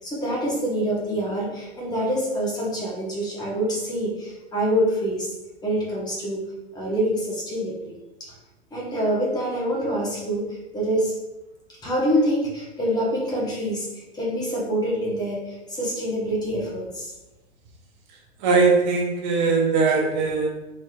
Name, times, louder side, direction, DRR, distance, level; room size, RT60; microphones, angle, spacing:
voice 1, 0.0-5.3 5.6-7.9 8.7-11.2 11.8-17.1, equal, 10° left, -5 dB, 1.0 m, -26 dB
voice 2, 18.4-20.5, right 4 dB, 40° right, -1 dB, 0.8 m, -20 dB
4.2 x 3.2 x 2.3 m, 1.0 s
hypercardioid pair, 105°, 32 cm